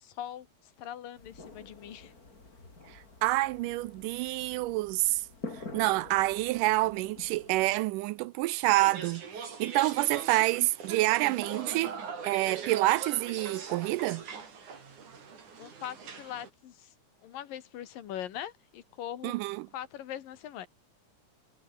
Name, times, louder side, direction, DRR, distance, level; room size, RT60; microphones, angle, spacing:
voice 1, 0.0-2.1 15.6-16.9 17.2-19.3 19.7-20.7, left 11 dB, 80° left, 3.4 m, -41 dB
sound 1, 1.2-7.8, left 3 dB, 25° left, 4.2 m, -47 dB
voice 2, 2.9-5.2 5.7-12.0 12.2-14.2 19.2-19.7, right 19 dB, 80° right, 2.0 m, -28 dB
sound 2, 8.8-16.5, right 5 dB, 60° right, 5.4 m, -42 dB
omnidirectional pair, 3.9 m